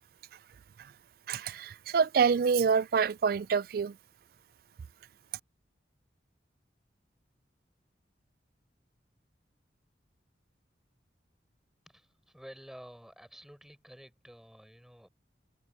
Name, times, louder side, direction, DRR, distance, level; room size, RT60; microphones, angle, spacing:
voice 1, 1.3-4.0, right 6 dB, 55° right, 0.3 m, -27 dB
voice 2, 11.9-15.1, equal, ahead, 5.7 m, -51 dB
head